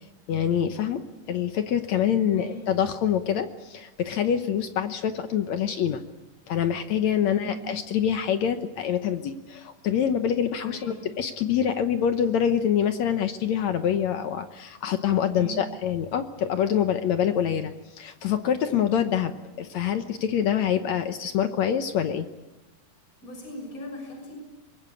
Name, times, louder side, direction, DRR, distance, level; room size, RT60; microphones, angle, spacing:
voice 1, 0.3-1.0 1.3-6.0 6.5-22.3, left 9 dB, 65° left, 9 dB, 2.0 m, -25 dB
voice 2, 2.3-2.7 7.3-7.7 10.6-11.1 15.3-15.6 18.9-19.0 23.2-24.4, right 2 dB, 25° left, 2 dB, 6.9 m, -40 dB
24.5 x 21.5 x 8.3 m, 1.0 s
omnidirectional pair, 4.0 m